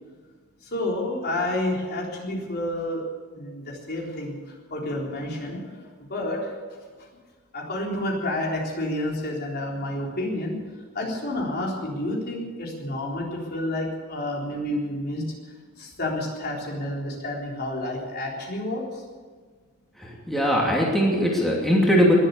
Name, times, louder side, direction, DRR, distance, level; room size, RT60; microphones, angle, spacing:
voice 1, 0.6-3.0 3.3-4.4 4.7-5.7 6.0-6.6 7.0-7.1 7.5-10.6 10.9-15.3 15.8-19.0, left 1 dB, 50° left, -2 dB, 3.9 m, -29 dB
voice 2, 20.0-22.1, equal, ahead, -3 dB, 2.8 m, -21 dB
20.5 x 8.1 x 8.6 m, 1.5 s
head